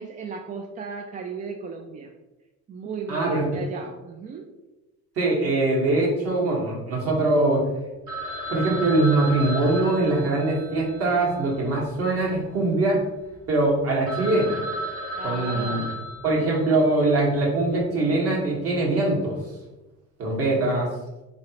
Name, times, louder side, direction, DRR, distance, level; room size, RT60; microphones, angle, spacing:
voice 1, 0.0-2.1 2.7-4.5 15.1-15.9, right 5 dB, 25° right, 3 dB, 0.3 m, -35 dB
voice 2, 3.1-3.5 5.2-7.6 8.5-13.0 13.5-14.7 15.2-15.8 16.2-19.4 20.2-20.9, right 2 dB, 50° right, -3 dB, 1.5 m, -22 dB
Telephone, 8.1-12.4 12.7-12.8 13.3-13.4 13.8-13.9 14.1-17.0, equal, 80° right, 1.4 m, -34 dB
3.8 x 3.2 x 2.9 m, 1.1 s
supercardioid pair, 100°, 31 cm